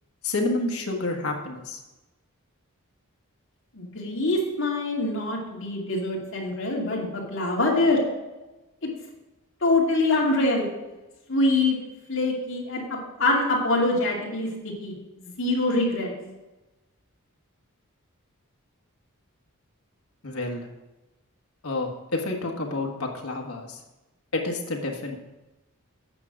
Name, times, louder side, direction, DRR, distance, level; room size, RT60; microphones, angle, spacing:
voice 1, 0.2-1.8 20.2-20.7 21.6-23.8 24.3-25.2, left 2 dB, 85° left, 1 dB, 1.4 m, -29 dB
voice 2, 3.7-8.0 9.6-10.6 11.3-11.8 12.1-12.8 13.2-14.9 15.2-16.1, left 2 dB, 60° left, -2 dB, 2.5 m, -24 dB
8.7 x 6.3 x 6.0 m, 1.1 s
head